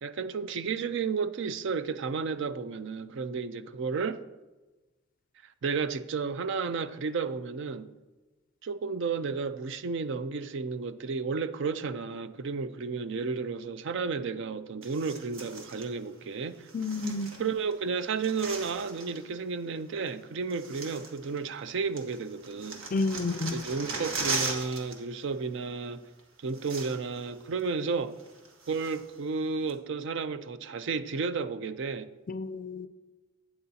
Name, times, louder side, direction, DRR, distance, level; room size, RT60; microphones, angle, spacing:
voice 1, 0.0-4.2 5.6-7.9 8.6-16.7 17.4-22.8 23.5-26.0 26.4-28.1 28.7-32.1, right 5 dB, 60° right, 0.4 m, -32 dB
sound 1, 14.8-15.9 16.7-17.7 18.0-19.2 20.1-20.2 20.5-21.7 22.0-25.0 25.2-25.4 26.2-26.3 26.5-27.2 27.6-27.7 28.2-29.2 29.7-29.8, right 3 dB, 75° right, 1.4 m, -38 dB
voice 2, 16.7-17.3 22.9-23.6 32.3-32.9, left 3 dB, 40° left, 0.4 m, -30 dB
12.0 x 8.7 x 2.8 m
head